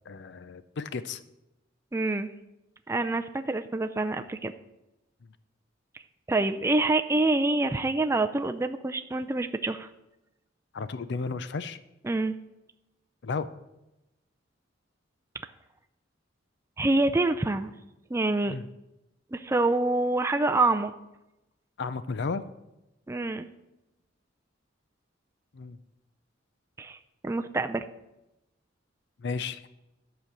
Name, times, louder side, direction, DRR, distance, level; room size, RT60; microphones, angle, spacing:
voice 1, 0.1-1.2 10.7-11.8 13.2-13.5 18.5-18.6 21.8-22.4 25.5-25.8 29.2-29.7, left 4 dB, 60° left, 13 dB, 0.5 m, -33 dB
voice 2, 1.9-2.3 2.9-4.5 6.3-9.9 12.0-12.3 16.8-17.7 18.1-18.5 19.3-20.9 23.1-23.5 26.8-27.0 27.2-27.8, right 2 dB, 15° right, 7 dB, 0.4 m, -26 dB
11.0 x 5.1 x 7.4 m, 0.94 s
head